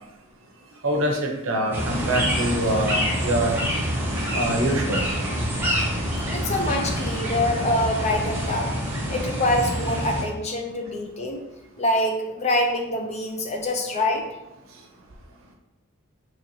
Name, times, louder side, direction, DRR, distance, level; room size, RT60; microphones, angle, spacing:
voice 1, 0.8-1.2 1.5-3.5 4.3-5.1, right 1 dB, 65° right, 2 dB, 0.7 m, -24 dB
sound 1, 1.7-10.2, equal, 10° right, 0.6 m, -26 dB
voice 2, 6.3-8.7 9.1-11.4 11.8-14.2, left 1 dB, 30° left, 2 dB, 0.5 m, -25 dB
4.4 x 3.0 x 2.7 m, 0.96 s
head